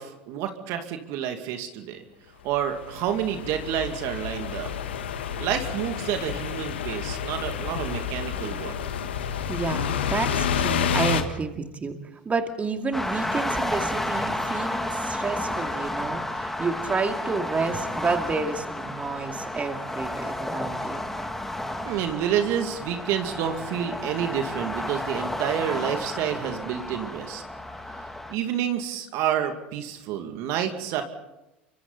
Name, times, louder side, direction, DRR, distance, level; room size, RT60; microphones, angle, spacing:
voice 1, 0.0-2.0 2.4-4.7 5.4-8.8 21.9-27.4 28.3-31.0, right 9 dB, 60° right, 5 dB, 2.4 m, -29 dB
sound 1, 2.6-2.7 2.8-11.2, left 7 dB, 85° left, 1.6 m, -29 dB
voice 2, 9.2-21.1, right 4 dB, 25° right, 5 dB, 2.5 m, -30 dB
sound 2, 12.9-28.3, left 1 dB, 5° left, 2.7 m, -32 dB
29.0 x 24.5 x 4.2 m, 0.93 s
hypercardioid pair, 85°, 6 cm